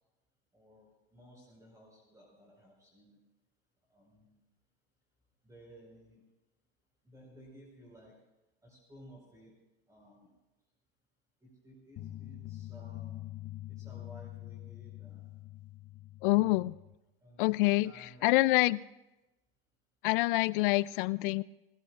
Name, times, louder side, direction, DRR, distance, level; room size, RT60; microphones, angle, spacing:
voice 1, 0.5-3.2 3.9-4.4 5.4-6.2 7.0-8.2 8.6-9.5 9.9-10.3 11.4-13.2 13.7-15.4 17.2-18.7, equal, 10° right, -3 dB, 5.0 m, -56 dB
sound 1, 12.0-16.9, left 15 dB, 35° left, 0.8 m, -45 dB
voice 2, 16.2-16.8 17.4-17.9 18.2-18.8 20.0-21.4, left 20 dB, 60° left, 20 dB, 0.5 m, -26 dB
28.5 x 17.0 x 2.5 m, 0.99 s
hypercardioid pair, 115°, 31 cm